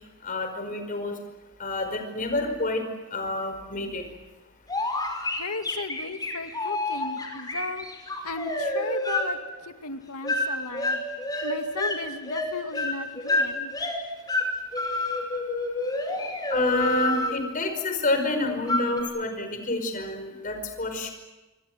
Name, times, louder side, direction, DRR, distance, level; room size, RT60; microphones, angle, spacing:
voice 1, 0.2-1.2 1.6-2.8 3.1-4.0 16.5-21.1, left 2 dB, 40° left, 5.1 m, -28 dB
sound 1, 4.7-9.3 10.2-10.5 10.7-12.0 12.3-14.0 14.3-14.5 14.7-17.4 18.7-19.0, left 2 dB, 15° left, 5.5 m, -28 dB
voice 2, 5.3-11.0 11.4-13.7 16.1-16.4, left 3 dB, 85° left, 2.2 m, -36 dB
28.0 x 24.0 x 7.9 m
head